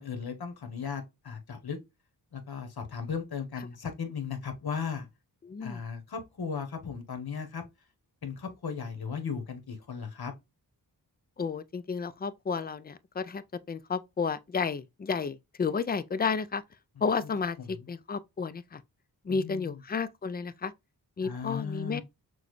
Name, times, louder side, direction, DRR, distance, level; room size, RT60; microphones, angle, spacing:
voice 1, 0.0-1.8 2.3-5.1 5.6-7.6 8.2-10.3 19.3-19.8 21.2-22.0, left 6 dB, 60° left, 1.1 m, -36 dB
voice 2, 5.4-5.8 11.4-13.4 13.7-16.6 17.0-18.8 19.2-20.7 21.2-22.0, left 5 dB, 25° left, 0.3 m, -32 dB
6.1 x 2.2 x 3.1 m
wide cardioid pair, 70°, 41 cm